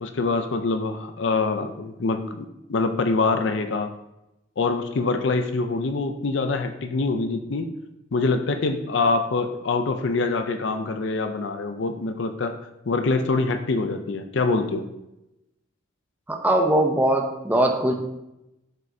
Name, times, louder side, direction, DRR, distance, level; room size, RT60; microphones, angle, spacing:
voice 1, 0.0-3.9 4.6-7.7 8.1-12.5 12.9-14.8, left 3 dB, 65° left, 7 dB, 0.5 m, -25 dB
voice 2, 16.3-17.9, right 1 dB, 10° right, 2 dB, 0.6 m, -21 dB
7.5 x 5.4 x 2.7 m, 0.89 s
head